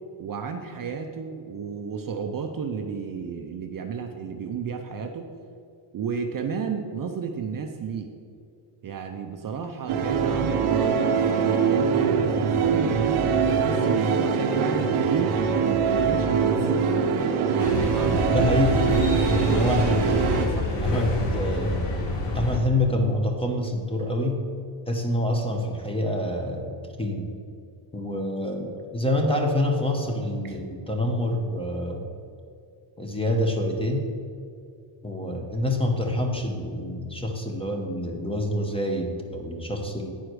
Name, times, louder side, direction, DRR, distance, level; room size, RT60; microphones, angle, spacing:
voice 1, 0.2-5.3 5.9-8.1 8.8-16.8 17.5-18.4 18.9-19.7 20.1-21.3 30.4-30.5, right 6 dB, 45° right, 5 dB, 0.6 m, -32 dB
sound 1, 9.9-20.5, right 6 dB, 90° right, 0.9 m, -23 dB
sound 2, 17.6-22.6, left 2 dB, 60° left, 1.7 m, -27 dB
voice 2, 18.3-18.9 19.3-20.1 20.8-21.9 22.3-24.4 24.9-27.3 27.9-32.1 33.0-34.1 35.0-40.1, left 1 dB, 10° left, 2 dB, 0.9 m, -26 dB
9.2 x 4.9 x 6.1 m, 2.4 s
cardioid pair, 135°, 50 cm